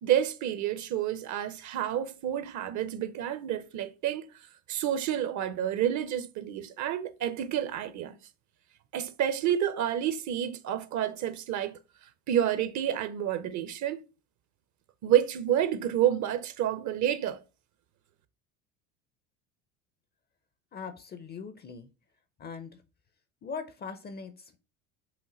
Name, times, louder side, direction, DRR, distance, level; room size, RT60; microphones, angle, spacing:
voice 1, 0.0-4.3 4.7-8.2 8.9-11.8 12.3-14.0 15.0-17.4, right 10 dB, 40° right, 0.6 m, -29 dB
voice 2, 20.7-21.9 22.4-22.8 23.4-24.6, left 5 dB, 25° left, 0.5 m, -41 dB
5.0 x 2.7 x 3.8 m
hypercardioid pair, 85°, 43 cm